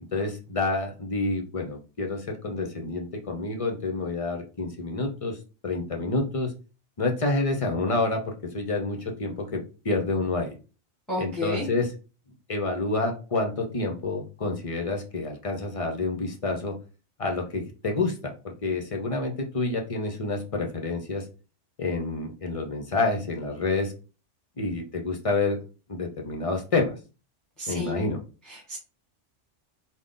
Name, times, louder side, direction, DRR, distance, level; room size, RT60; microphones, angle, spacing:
voice 1, 0.1-5.4 5.6-6.5 7.0-10.6 11.2-11.9 12.5-16.8 17.2-21.2 21.8-23.9 24.6-25.6 25.9-26.9 27.7-28.2, left 3 dB, 40° left, 3 dB, 0.5 m, -28 dB
voice 2, 11.1-11.7 27.6-28.1 28.4-28.8, left 1 dB, ahead, -5 dB, 1.1 m, -32 dB
3.8 x 2.1 x 3.6 m, 0.33 s
omnidirectional pair, 1.2 m